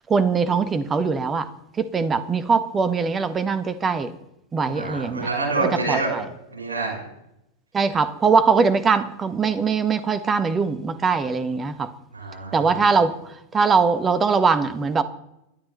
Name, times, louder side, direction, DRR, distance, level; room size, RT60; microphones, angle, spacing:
voice 1, 0.1-1.5 1.8-4.1 4.5-5.3 5.6-6.2 7.7-11.9 12.5-13.1 13.5-15.0, right 5 dB, 20° right, 13 dB, 1.3 m, -21 dB
voice 2, 4.7-6.1 6.5-7.0 12.1-12.8, right 3 dB, 75° right, 1 dB, 6.3 m, -27 dB
29.5 x 11.5 x 4.1 m, 0.85 s
figure-of-eight pair, 90°, 0 cm